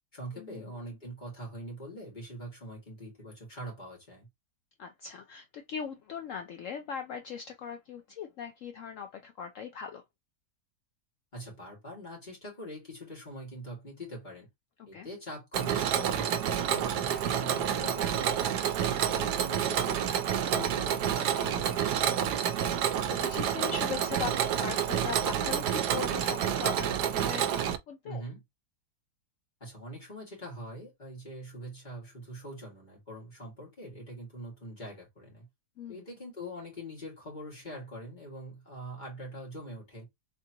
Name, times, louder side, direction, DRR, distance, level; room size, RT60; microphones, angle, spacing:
voice 1, 0.1-4.3 11.3-14.5 14.9-18.4 18.8-21.9 28.0-28.4 29.6-35.5 35.9-40.0, right 1 dB, 30° left, 2.4 m, -43 dB
voice 2, 4.8-10.0 14.8-15.1 22.2-28.2 35.8-36.1, left 7 dB, 70° left, 0.8 m, -40 dB
Mechanisms, 15.5-27.8, right 9 dB, 75° right, 1.1 m, -29 dB
3.7 x 3.6 x 2.8 m
omnidirectional pair, 1.7 m